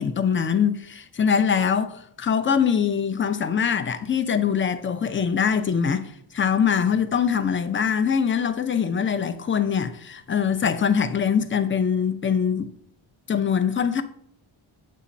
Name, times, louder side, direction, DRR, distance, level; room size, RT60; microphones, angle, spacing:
voice 1, 0.0-12.7 13.3-14.0, left 7 dB, 25° left, 0.5 m, -23 dB
7.3 x 2.8 x 5.0 m
cardioid pair, 70°, 50 cm